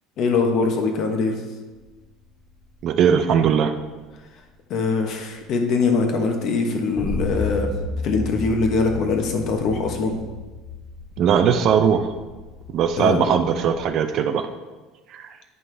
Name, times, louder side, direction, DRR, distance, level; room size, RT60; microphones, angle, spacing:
voice 1, 0.2-1.4 4.7-7.7 8.0-10.2 13.0-13.3, left 4 dB, 45° left, 3 dB, 1.0 m, -22 dB
voice 2, 2.8-3.7 11.2-12.1 12.7-14.4 15.1-15.3, right 7 dB, 40° right, 8 dB, 0.5 m, -19 dB
sound 1, 7.0-13.9, left 2 dB, 15° left, 0.9 m, -32 dB
9.3 x 5.4 x 3.3 m, 1.2 s
cardioid pair, 160°, 0 cm